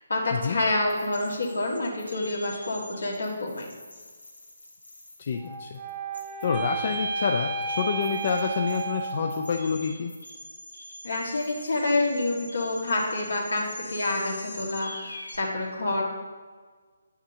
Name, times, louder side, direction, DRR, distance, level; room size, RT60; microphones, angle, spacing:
voice 1, 0.0-3.7 11.0-16.0, left 2 dB, 75° left, -2 dB, 1.7 m, -28 dB
sound 1, 0.9-15.4, left 1 dB, 90° left, 2.0 m, -45 dB
voice 2, 5.2-5.8 6.4-10.1, left 6 dB, 50° left, 3 dB, 0.4 m, -28 dB
sound 2, 5.3-9.7, right 4 dB, 25° right, 0.7 m, -32 dB
9.8 x 5.9 x 2.8 m, 1.5 s
figure-of-eight pair, 145°, 0 cm